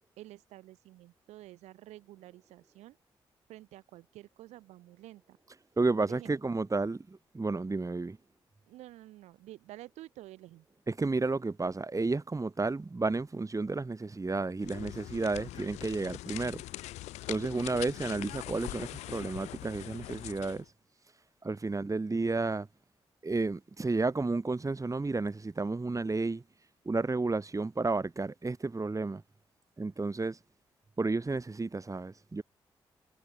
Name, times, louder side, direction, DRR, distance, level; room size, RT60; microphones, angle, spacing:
voice 1, 0.2-3.0 3.5-5.4 6.0-6.3 8.7-10.7, right 15 dB, 80° right, 5.6 m, -50 dB
voice 2, 5.8-8.2 10.9-16.6 17.3-20.6 21.4-22.7 23.2-26.4 26.9-29.2 29.8-30.4 31.0-32.4, right 3 dB, 30° right, 2.7 m, -32 dB
sound 1, 14.6-20.6, left 17 dB, 80° left, 1.4 m, -42 dB
hypercardioid pair, 40°, 11 cm